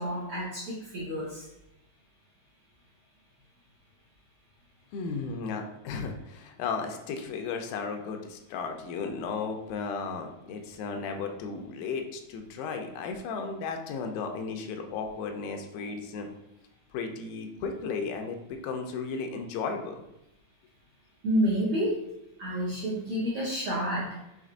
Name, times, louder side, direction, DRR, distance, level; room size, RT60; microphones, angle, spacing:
voice 1, 0.0-1.5 21.2-22.0 22.4-24.2, equal, 75° right, -7 dB, 1.4 m, -29 dB
voice 2, 4.9-16.3 16.9-20.0, left 5 dB, 80° left, 4 dB, 2.3 m, -35 dB
6.3 x 3.4 x 2.5 m, 0.89 s
omnidirectional pair, 4.2 m